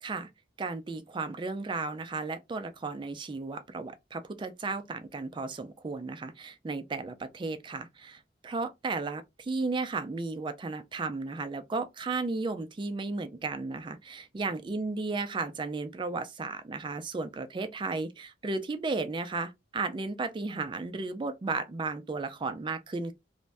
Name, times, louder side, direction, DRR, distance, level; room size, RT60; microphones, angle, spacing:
voice 1, 0.6-23.1, right 3 dB, 25° right, 0.3 m, -34 dB
2.5 x 2.1 x 3.2 m
head